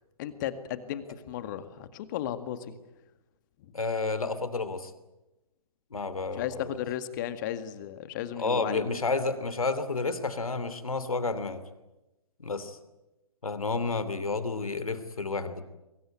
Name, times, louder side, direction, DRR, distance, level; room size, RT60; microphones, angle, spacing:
voice 1, 0.2-2.7 3.6-3.7 6.4-8.8, left 11 dB, 30° left, 11 dB, 2.0 m, -35 dB
voice 2, 3.7-4.9 5.9-6.6 8.4-11.6 12.4-12.8 13.4-15.6, left 3 dB, 70° left, 13 dB, 3.0 m, -30 dB
23.5 x 23.0 x 9.2 m, 0.99 s
figure-of-eight pair, 130°, 19 cm